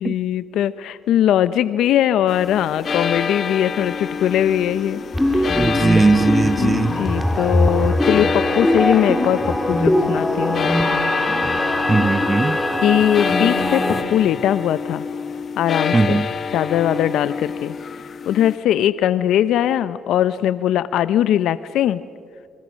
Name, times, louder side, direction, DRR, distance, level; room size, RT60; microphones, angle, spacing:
voice 1, 0.0-5.0 5.3-5.5 6.6-11.0 12.5-15.1 15.6-16.2 16.5-17.8 18.3-22.0, left 11 dB, 80° left, 15 dB, 0.5 m, -20 dB
sound 1, 2.3-18.6, left 6 dB, 50° left, 0.9 m, -27 dB
sound 2, 5.1-14.0, left 1 dB, 10° left, 2.8 m, -21 dB
voice 2, 5.6-7.0 11.9-12.6 15.9-16.3, right 3 dB, 20° right, 17 dB, 0.7 m, -18 dB
28.0 x 27.5 x 6.3 m, 2.4 s
cardioid pair, 90°, 0 cm